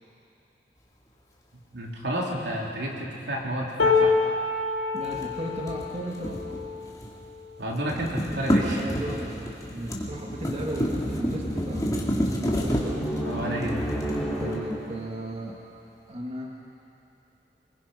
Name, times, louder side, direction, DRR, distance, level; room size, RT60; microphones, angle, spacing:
voice 1, 1.7-4.1 7.6-8.9 13.2-13.8, right 1 dB, 80° right, -2 dB, 3.4 m, -31 dB
sound 1, 3.8-9.9 10.5-10.7 11.0-11.8 12.7-12.8, left 4 dB, 80° left, 2.1 m, -29 dB
voice 2, 4.9-6.5 8.7-11.9 12.4-12.8 14.4-15.6 16.1-16.6, right 1 dB, 35° right, -2 dB, 1.8 m, -35 dB
sound 2, 5.0-7.3 7.6-14.9, equal, 20° left, 2.6 m, -30 dB
sound 3, 9.7-15.1, equal, ahead, 3.0 m, -33 dB
24.5 x 21.5 x 5.6 m, 2.7 s
head